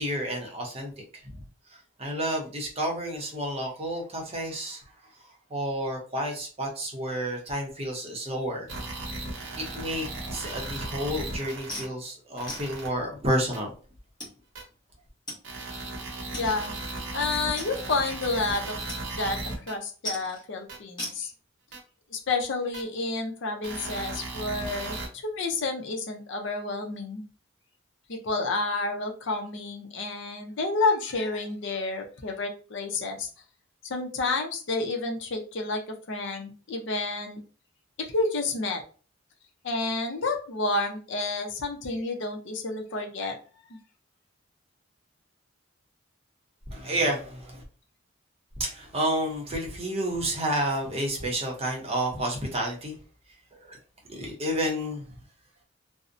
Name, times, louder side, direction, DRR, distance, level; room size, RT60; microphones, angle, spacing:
voice 1, 0.0-1.4 1.7-4.8 5.2-8.8 9.6-13.8 46.7-47.6 48.6-53.0 53.5-53.8 54.1-55.1, right 1 dB, 30° right, 0 dB, 0.6 m, -30 dB
sound 1, 8.7-11.9 12.4-12.9 13.5-13.6 14.6-14.7 15.4-19.7 20.7-20.8 21.7-21.8 22.7-22.8 23.6-25.1, right 2 dB, 65° right, 0.8 m, -36 dB
sound 2, 11.7-11.9 12.5-12.7 13.5-13.6 14.2-14.3 15.3-15.4 15.7-15.8 16.3-16.5 16.9-17.0 17.6-18.0 18.9-19.0 19.3-19.6 20.0-20.4 21.0-21.2, left 1 dB, 20° left, 0.9 m, -37 dB
voice 2, 16.4-18.8 19.2-19.4 19.7-21.3 22.1-27.2 28.1-33.3 33.8-35.8 36.1-37.4 38.0-38.8 39.6-43.4 43.7-43.8, left 3 dB, 60° left, 3 dB, 0.5 m, -30 dB
2.5 x 2.0 x 2.5 m, 0.38 s
head